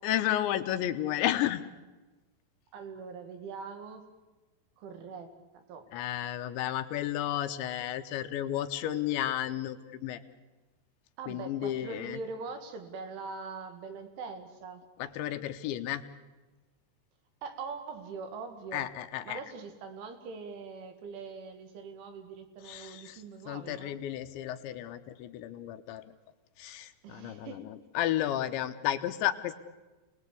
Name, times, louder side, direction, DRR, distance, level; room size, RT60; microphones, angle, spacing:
voice 1, 0.0-1.6 5.9-10.2 11.3-12.2 15.0-16.0 18.7-19.4 22.7-26.0 26.6-29.5, left 12 dB, 80° left, 8 dB, 3.3 m, -32 dB
voice 2, 2.7-4.1 4.8-5.9 11.2-14.8 17.4-18.9 19.2-24.0 27.0-27.7, right 4 dB, 85° right, 6 dB, 4.6 m, -42 dB
29.0 x 19.5 x 8.4 m, 1.2 s
omnidirectional pair, 5.3 m